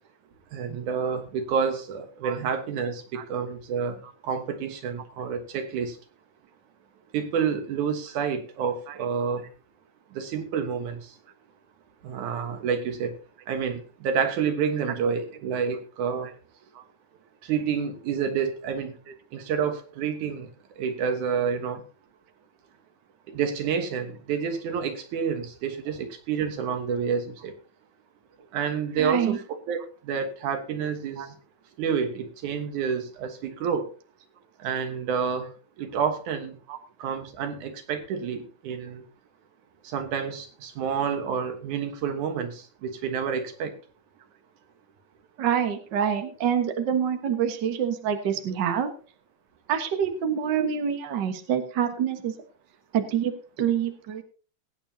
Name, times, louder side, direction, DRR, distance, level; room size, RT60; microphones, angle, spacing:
voice 1, 0.5-6.0 7.1-9.5 10.1-11.1 12.0-13.1 13.5-16.3 17.4-18.9 19.3-20.5 20.8-21.8 23.3-27.5 28.5-29.4 29.7-31.4 31.8-33.9 34.6-36.6 37.0-39.0 39.8-43.7, right 6 dB, 85° right, 7 dB, 2.9 m, -29 dB
voice 2, 28.9-29.4 30.8-31.3 36.7-36.8 45.4-48.9 49.7-52.3 52.9-54.2, right 8 dB, 45° right, 6 dB, 1.7 m, -27 dB
21.0 x 9.1 x 2.8 m, 0.37 s
omnidirectional pair, 3.4 m